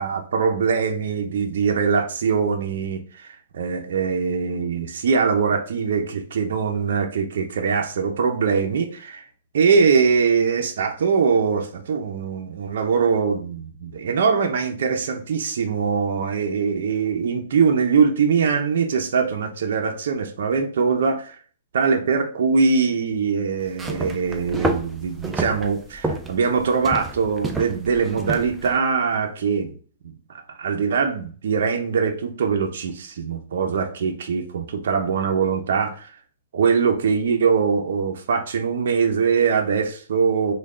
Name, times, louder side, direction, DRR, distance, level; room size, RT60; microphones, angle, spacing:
voice 1, 0.0-9.2 9.5-21.4 21.7-29.7 30.0-30.2 30.6-36.1 36.5-40.5, right 5 dB, 70° right, 3 dB, 0.6 m, -22 dB
sound 1, 23.6-28.8, right 2 dB, 10° right, 0.4 m, -29 dB
3.2 x 2.3 x 3.6 m, 0.41 s
hypercardioid pair, 155°, 0 cm